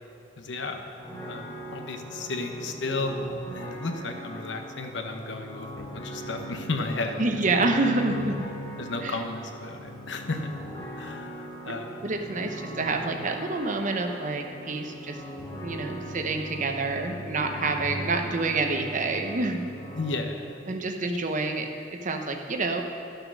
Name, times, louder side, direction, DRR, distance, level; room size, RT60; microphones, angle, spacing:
voice 1, 0.4-0.8 1.3-3.1 3.5-7.2 8.8-10.6 11.0-12.0 19.9-20.6 21.0-21.1, left 3 dB, 80° left, 5 dB, 0.9 m, -33 dB
sound 1, 1.0-20.2, equal, 20° left, 1.6 m, -39 dB
voice 2, 7.2-8.3 9.0-9.2 12.0-15.2 15.6-19.6 20.7-21.7 22.0-22.8, right 3 dB, 45° right, 4 dB, 0.8 m, -27 dB
11.5 x 6.7 x 6.2 m, 2.6 s
head